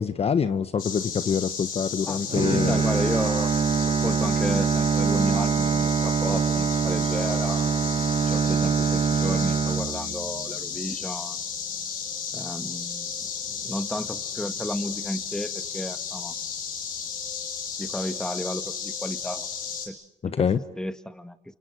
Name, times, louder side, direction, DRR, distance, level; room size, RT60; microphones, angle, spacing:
voice 1, 0.0-2.8 20.3-20.6, left 6 dB, 40° left, 1.1 m, -25 dB
sound 1, 0.8-19.9, left 7 dB, 65° left, 7.4 m, -34 dB
voice 2, 2.0-11.4 12.3-16.3 17.8-19.5 19.9-20.0 20.2-20.5 20.8-21.4, left 1 dB, 5° left, 1.8 m, -33 dB
Bowed string instrument, 2.3-10.5, right 6 dB, 35° right, 1.0 m, -24 dB
28.5 x 28.5 x 6.4 m
hypercardioid pair, 60°, 16 cm